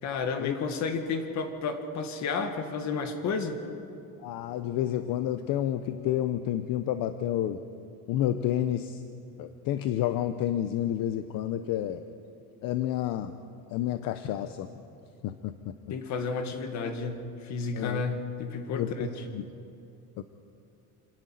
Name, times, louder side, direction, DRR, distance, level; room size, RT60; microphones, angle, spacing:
voice 1, 0.0-3.6 15.9-19.3, left 4 dB, 50° left, 6 dB, 1.9 m, -32 dB
voice 2, 4.2-7.6 8.1-9.0 9.4-12.0 12.6-13.3 13.7-14.7 15.2-15.7 17.7-18.0 18.8-18.9 19.3-19.4 20.2-20.3, left 11 dB, 70° left, 10 dB, 0.8 m, -29 dB
27.5 x 10.5 x 9.3 m, 2.7 s
cardioid pair, 170°, 35 cm